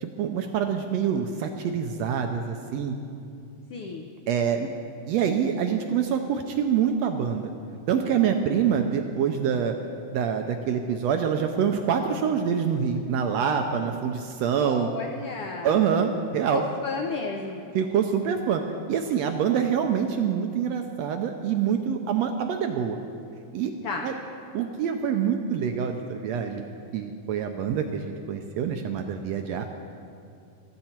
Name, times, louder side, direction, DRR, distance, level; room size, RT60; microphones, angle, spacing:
voice 1, 0.0-3.0 4.3-4.7 5.1-7.5 7.9-9.7 10.1-14.9 15.6-16.6 17.7-18.6 18.9-23.0 23.5-23.7 24.0-24.1 24.5-26.6 26.9-28.0 28.3-29.7, right 7 dB, 80° right, 5 dB, 1.5 m, -25 dB
voice 2, 3.7-4.1 14.6-15.8 16.5-17.7 23.8-24.1, left 4 dB, 90° left, 2 dB, 1.2 m, -33 dB
15.5 x 13.5 x 4.4 m, 2.5 s
omnidirectional pair, 3.7 m